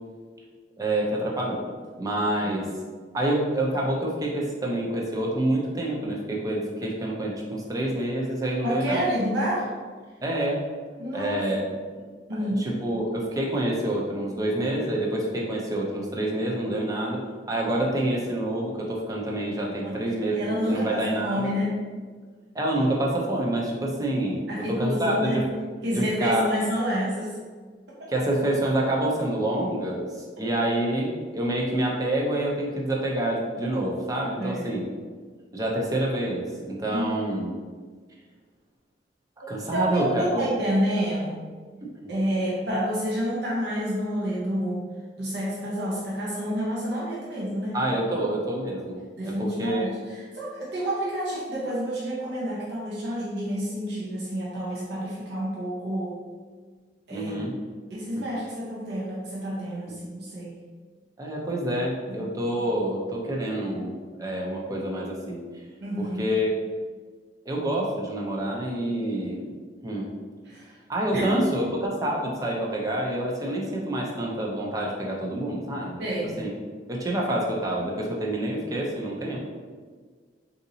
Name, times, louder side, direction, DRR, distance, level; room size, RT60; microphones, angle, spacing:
voice 1, 0.8-1.6 2.0-2.7 3.1-9.0 10.2-10.6 11.1-11.6 12.3-17.2 17.5-21.5 22.5-24.4 24.7-25.5 25.9-26.5 28.1-34.9 35.5-37.5 39.5-40.5 41.8-41.9 47.7-49.9 57.1-57.6 58.2-58.3 61.2-63.9 64.2-65.4 66.0-66.6 67.5-69.5 69.8-70.1 70.9-71.7 72.0-76.0 76.4-76.5 76.9-79.5, right 1 dB, 20° right, -2 dB, 0.5 m, -27 dB
voice 2, 8.6-9.7 11.0-11.4 12.3-12.7 19.7-20.0 20.3-21.8 24.5-25.4 25.8-27.4 34.4-34.7 36.9-37.2 39.7-41.4 42.1-44.9 45.2-47.8 49.2-56.2 57.1-57.4 57.9-60.5 62.1-62.3 65.8-66.2 70.4-70.8 71.1-71.5 76.0-76.3, equal, 65° right, -7 dB, 0.7 m, -29 dB
3.8 x 2.7 x 2.7 m, 1.5 s
head